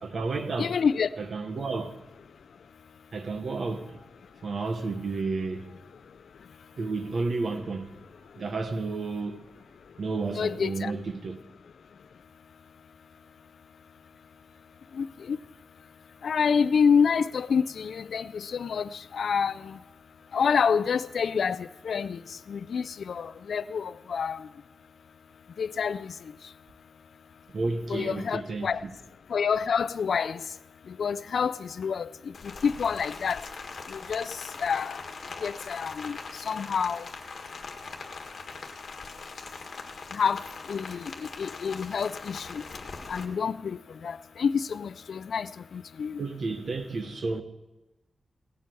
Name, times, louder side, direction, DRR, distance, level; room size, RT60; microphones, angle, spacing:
voice 1, 0.0-0.8 1.2-1.9 3.1-4.0 4.4-5.6 6.8-7.9 8.4-9.5 10.0-11.4 27.5-28.9 46.2-47.4, right 3 dB, 60° right, 1.1 m, -31 dB
voice 2, 0.6-1.1 10.4-10.9 14.9-15.4 16.2-19.8 20.3-22.2 22.5-24.5 25.6-26.1 27.9-28.8 29.3-30.4 30.9-32.1 32.6-33.4 33.9-35.0 35.4-36.2 36.5-37.1 40.1-40.4 40.7-41.1 41.4-42.6 43.1-46.2, left 6 dB, 80° left, 0.4 m, -28 dB
Rain, 32.3-43.2, left 4 dB, 60° left, 1.5 m, -41 dB
17.0 x 7.7 x 6.9 m
wide cardioid pair, 145°, 0 cm